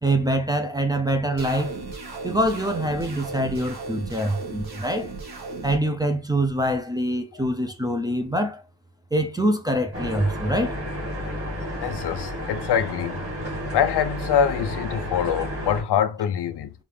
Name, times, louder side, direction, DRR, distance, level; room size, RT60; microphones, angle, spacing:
voice 1, 0.0-1.7 2.2-5.1 5.6-8.6 9.1-10.8, right 1 dB, 10° right, 0.5 m, -24 dB
sound 1, 1.4-5.8, right 3 dB, 55° right, 1.4 m, -36 dB
sound 2, 9.9-15.8, equal, 30° right, 2.0 m, -31 dB
voice 2, 11.8-13.2 13.7-16.7, left 8 dB, 65° left, 0.5 m, -24 dB
5.0 x 2.5 x 3.3 m
wide cardioid pair, 120°, 44 cm